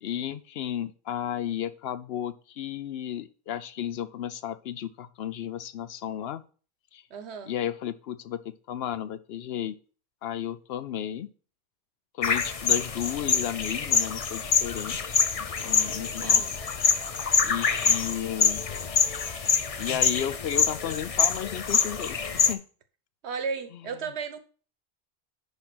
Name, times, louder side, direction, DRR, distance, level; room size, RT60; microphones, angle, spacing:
voice 1, 0.0-6.4 6.9-7.0 7.5-9.7 10.2-11.3 12.1-16.4 17.4-18.7 19.8-22.6 23.7-23.8, left 10 dB, 75° left, 14 dB, 0.8 m, -33 dB
voice 2, 7.1-7.5 16.0-16.5 23.2-24.4, right 5 dB, 90° right, 10 dB, 1.2 m, -34 dB
sound 1, 12.2-22.5, left 5 dB, 40° left, 0.7 m, -25 dB
10.5 x 3.5 x 6.0 m, 0.39 s
omnidirectional pair, 1.1 m